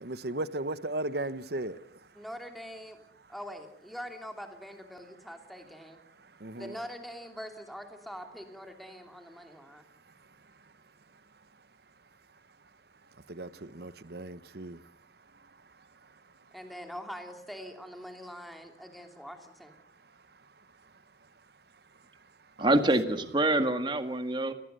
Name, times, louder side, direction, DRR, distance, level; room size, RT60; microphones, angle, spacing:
voice 1, 0.0-1.8 6.4-6.7 13.4-13.5 13.7-14.8 22.6-22.7 23.1-23.3, right 1 dB, 60° right, 1.1 m, -35 dB
voice 2, 2.1-3.0 3.3-6.0 6.5-9.8 16.5-19.7, equal, ahead, 2.8 m, -43 dB
voice 3, 22.6-24.5, right 2 dB, 25° right, 1.8 m, -26 dB
30.0 x 19.5 x 6.8 m
head